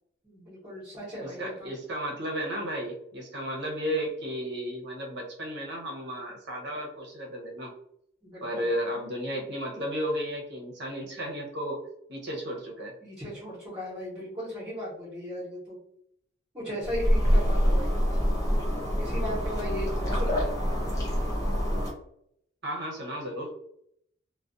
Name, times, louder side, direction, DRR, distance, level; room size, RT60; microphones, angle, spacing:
voice 1, 0.2-1.7 8.2-8.7 13.0-15.8 16.5-18.1 19.0-20.8, equal, 20° right, -9 dB, 0.9 m, -37 dB
voice 2, 1.2-7.7 8.4-11.8 12.1-12.9 22.6-23.5, equal, 55° right, 0 dB, 0.7 m, -33 dB
sound 1, 16.8-21.9, equal, 15° left, 0.4 m, -26 dB
2.3 x 2.1 x 2.5 m, 0.71 s
head